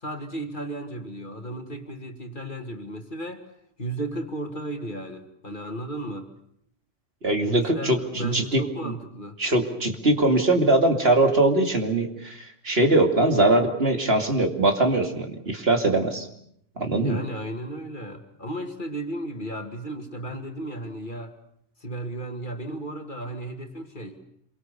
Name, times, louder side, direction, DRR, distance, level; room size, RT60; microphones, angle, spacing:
voice 1, 0.0-3.5 3.8-6.3 7.4-9.4 17.0-21.3 21.8-24.2, right 1 dB, 45° left, 5 dB, 2.5 m, -34 dB
voice 2, 7.2-8.9 9.4-16.3 16.8-17.2, right 2 dB, 55° right, 4 dB, 2.9 m, -22 dB
27.0 x 24.0 x 6.8 m, 0.70 s
omnidirectional pair, 1.2 m